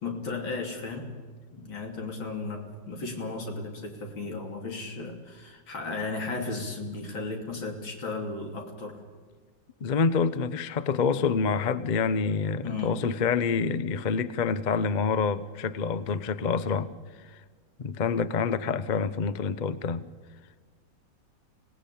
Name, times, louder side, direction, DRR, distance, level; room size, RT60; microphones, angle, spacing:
voice 1, 0.0-1.1 1.5-9.0 12.6-13.0, left 3 dB, 85° left, 2 dB, 3.7 m, -35 dB
voice 2, 9.8-16.9 17.3-17.4 17.8-20.0, left 5 dB, 65° left, 14 dB, 0.4 m, -27 dB
25.0 x 18.0 x 8.5 m, 1.4 s
omnidirectional pair, 2.1 m